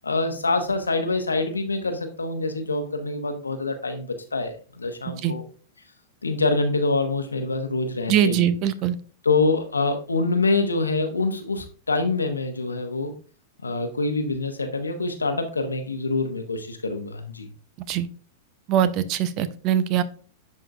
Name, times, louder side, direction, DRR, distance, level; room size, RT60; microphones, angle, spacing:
voice 1, 0.0-5.4 6.2-8.5 9.2-13.1 13.6-17.5, left 3 dB, 90° left, 6 dB, 0.9 m, -25 dB
voice 2, 8.1-9.0 17.9-18.1 18.7-20.0, right 10 dB, 45° right, 14 dB, 0.6 m, -22 dB
10.5 x 3.7 x 2.4 m, 0.40 s
hypercardioid pair, 100°, 0 cm